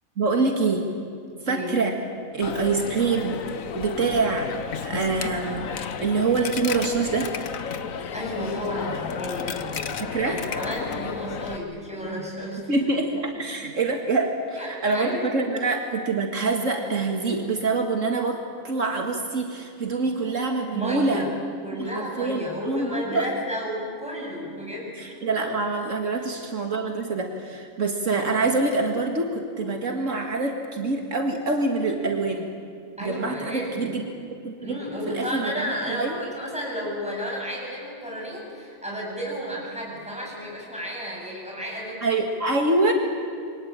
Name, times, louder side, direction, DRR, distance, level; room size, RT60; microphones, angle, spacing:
voice 1, 0.2-0.9 1.4-1.9 2.3-3.4 3.7-4.5 4.8-7.3 10.0-10.4 12.7-21.2 21.8-23.3 25.0-32.5 33.0-34.0 34.4-34.8 35.1-36.2 42.0-42.9, right 3 dB, 70° right, 3 dB, 2.3 m, -25 dB
Coin (dropping), 2.4-11.6, left 6 dB, 85° left, 1.5 m, -33 dB
voice 2, 8.1-12.7 14.6-15.7 20.7-21.3 21.6-25.1 26.2-26.3 33.0-33.9 34.6-42.1, equal, 5° right, -3 dB, 8.0 m, -32 dB
28.5 x 23.5 x 8.9 m, 2.4 s
omnidirectional pair, 1.4 m